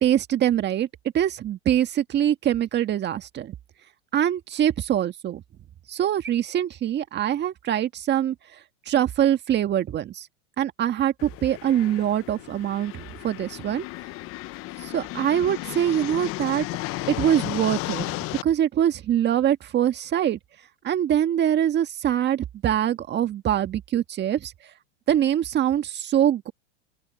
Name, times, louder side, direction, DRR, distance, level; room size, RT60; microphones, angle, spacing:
voice 1, 0.0-0.9 1.1-3.6 4.1-5.4 5.9-8.4 8.9-10.3 10.6-13.9 14.8-16.6 17.1-18.1 18.4-20.4 20.8-24.5 25.1-26.5, right 10 dB, 30° right, 1.7 m, -23 dB
sound 1, 11.2-18.4, left 19 dB, 40° left, 0.9 m, -34 dB
open air
hypercardioid pair, 115°, 36 cm